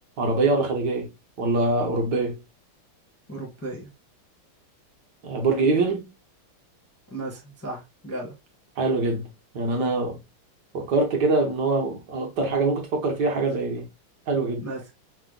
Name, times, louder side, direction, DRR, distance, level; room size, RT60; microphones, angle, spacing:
voice 1, 0.2-1.1 1.4-2.4 5.2-6.1 8.8-9.3 9.5-10.2 10.7-13.9 14.3-14.6, right 3 dB, 60° right, 1.3 m, -24 dB
voice 2, 3.3-3.9 7.1-8.3 14.6-14.8, right 2 dB, 15° left, 0.6 m, -35 dB
5.8 x 2.0 x 3.8 m
omnidirectional pair, 2.4 m